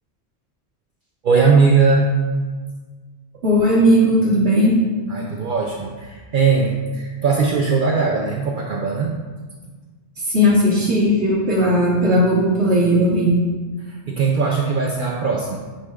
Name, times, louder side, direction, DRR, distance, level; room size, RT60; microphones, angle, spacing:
voice 1, 1.2-2.1 5.1-9.1 13.8-15.6, right 4 dB, 55° right, -1 dB, 0.7 m, -19 dB
voice 2, 3.4-4.8 10.3-13.4, equal, 80° right, -7 dB, 1.5 m, -16 dB
9.3 x 5.6 x 2.4 m, 1.4 s
omnidirectional pair, 1.1 m